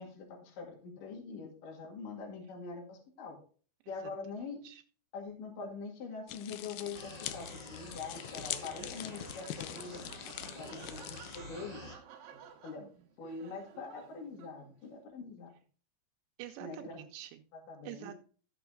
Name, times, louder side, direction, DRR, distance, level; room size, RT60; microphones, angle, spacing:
voice 1, 0.0-3.4 3.9-4.6 5.1-10.0 10.6-11.8 12.6-12.8 13.2-15.5 16.6-17.0 17.5-18.1, left 4 dB, 55° left, 3.6 m, -44 dB
sound 1, 6.3-11.4, left 13 dB, 80° left, 2.1 m, -43 dB
sound 2, 6.9-11.9, left 1 dB, 25° left, 0.8 m, -48 dB
Laughter, 8.3-14.9, right 7 dB, 65° right, 2.5 m, -54 dB
voice 2, 16.4-17.4 17.8-18.1, right 13 dB, 85° right, 2.9 m, -47 dB
13.5 x 6.8 x 3.9 m
omnidirectional pair, 5.0 m